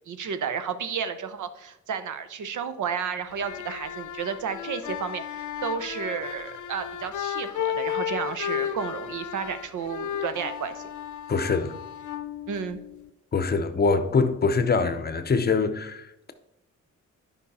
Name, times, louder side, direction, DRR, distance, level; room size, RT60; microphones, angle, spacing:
voice 1, 0.1-10.9 12.5-12.8, right 7 dB, 90° right, 0.9 m, -32 dB
sound 1, 3.3-13.1, left 9 dB, 90° left, 0.6 m, -34 dB
voice 2, 11.3-11.8 13.3-16.3, left 4 dB, 35° left, 0.7 m, -24 dB
11.0 x 5.5 x 4.2 m
wide cardioid pair, 160°, 29 cm